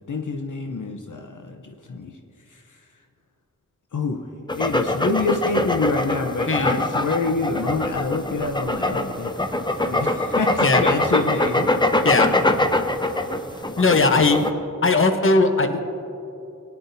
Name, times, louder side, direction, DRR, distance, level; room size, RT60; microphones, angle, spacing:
voice 1, 0.1-2.2 2.5-2.8 3.9-4.3 4.5-9.4 9.9-11.7, left 3 dB, 65° left, 3 dB, 0.8 m, -27 dB
sound 1, 4.5-14.5, left 2 dB, 15° left, 0.6 m, -23 dB
voice 2, 6.5-6.8 10.6-10.8 12.0-12.3 13.8-14.5 14.8-15.8, left 3 dB, 40° left, 6 dB, 0.9 m, -18 dB
sound 2, 7.6-13.6, right 1 dB, 15° right, 3.0 m, -42 dB
19.5 x 10.0 x 2.7 m, 2.8 s
wide cardioid pair, 65°, 34 cm